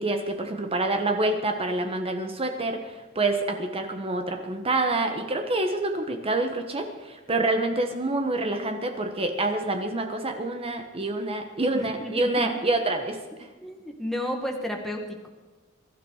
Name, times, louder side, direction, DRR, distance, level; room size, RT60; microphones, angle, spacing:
voice 1, 0.0-13.2, right 2 dB, 25° right, 5 dB, 1.3 m, -27 dB
voice 2, 11.7-12.5 13.6-15.3, left 1 dB, ahead, 1 dB, 1.8 m, -32 dB
22.5 x 13.0 x 4.9 m, 1.3 s
head